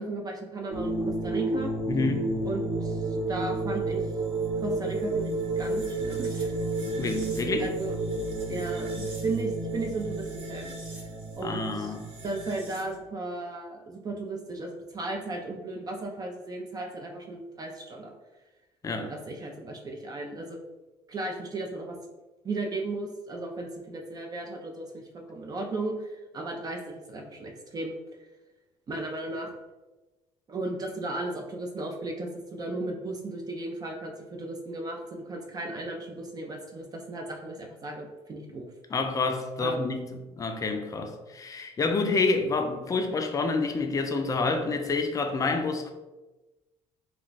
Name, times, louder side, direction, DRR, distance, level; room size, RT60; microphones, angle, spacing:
voice 1, 0.0-1.7 2.4-4.0 4.6-6.5 7.6-8.0 8.5-11.0 11.4-11.9 12.2-18.1 19.0-20.6 21.1-22.0 22.4-25.0 25.3-28.0 28.9-29.5 30.5-38.7 39.6-39.8, right 2 dB, 30° right, 2 dB, 0.4 m, -35 dB
sound 1, 0.7-13.0, right 2 dB, 60° right, 0.9 m, -31 dB
voice 2, 1.9-2.3 7.0-7.7 11.4-12.0 18.8-19.1 38.9-45.9, left 3 dB, 30° left, 5 dB, 0.4 m, -28 dB
2.3 x 2.2 x 3.8 m, 1.1 s
cardioid pair, 100°, 12 cm